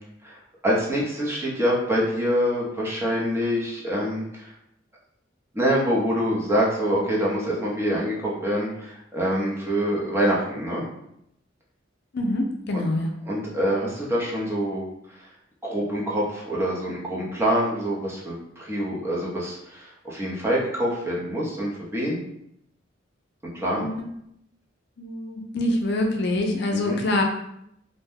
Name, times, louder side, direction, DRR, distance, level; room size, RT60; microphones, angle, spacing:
voice 1, 0.2-4.5 5.5-10.8 12.7-12.8 13.2-15.2 15.6-22.2 23.5-23.9 26.8-27.0, equal, 15° right, -5 dB, 0.6 m, -25 dB
voice 2, 12.1-13.1 23.7-24.0 25.0-27.2, left 1 dB, 60° left, 2 dB, 0.4 m, -25 dB
2.6 x 2.1 x 3.4 m, 0.77 s
head